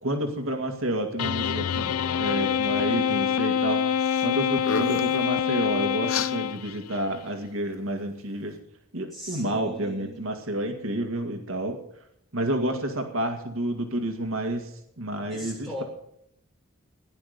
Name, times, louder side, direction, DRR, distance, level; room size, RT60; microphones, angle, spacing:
voice 1, 0.0-8.5 8.9-11.8 12.3-14.7 15.0-15.8, right 1 dB, 70° right, 4 dB, 1.9 m, -30 dB
sound 1, 1.2-7.0, left 8 dB, 85° left, 0.4 m, -26 dB
sound 2, 4.0-4.3 4.6-5.2 6.1-6.3, left 5 dB, 65° left, 0.9 m, -30 dB
voice 2, 9.1-10.4 15.3-15.8, left 1 dB, ahead, -4 dB, 6.7 m, -39 dB
16.5 x 11.0 x 5.1 m, 0.75 s
head